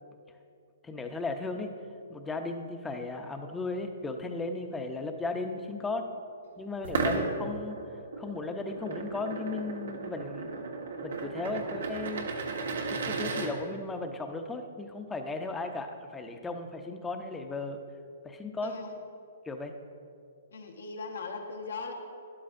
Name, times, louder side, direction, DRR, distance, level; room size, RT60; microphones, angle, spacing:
voice 1, 0.8-1.7 2.1-6.1 6.6-7.8 8.2-10.6 11.0-12.3 12.9-17.8 18.2-18.7 19.5-19.7, left 3 dB, 10° left, 5 dB, 0.7 m, -36 dB
sound 1, 6.8-13.5, right 4 dB, 80° right, 1.3 m, -34 dB
voice 2, 18.6-19.0 20.5-21.9, left 4 dB, 85° left, 2 dB, 1.3 m, -39 dB
12.5 x 11.0 x 2.6 m, 2.4 s
hypercardioid pair, 145°, 0 cm